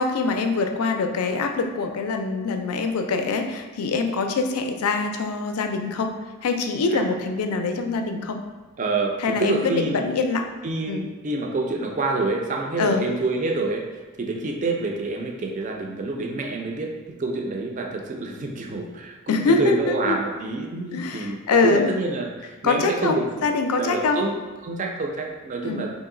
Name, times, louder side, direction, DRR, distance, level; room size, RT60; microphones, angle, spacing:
voice 1, 0.0-6.2 6.4-8.4 9.2-10.5 10.9-11.0 12.8-13.0 19.3-20.2 20.9-21.9 22.6-24.2 25.6-25.9, left 4 dB, 85° left, 5 dB, 0.4 m, -24 dB
voice 2, 8.8-9.1 9.4-10.0 10.6-23.5 23.7-25.9, right 2 dB, 35° right, 1 dB, 0.4 m, -27 dB
3.0 x 2.7 x 3.7 m, 1.3 s
head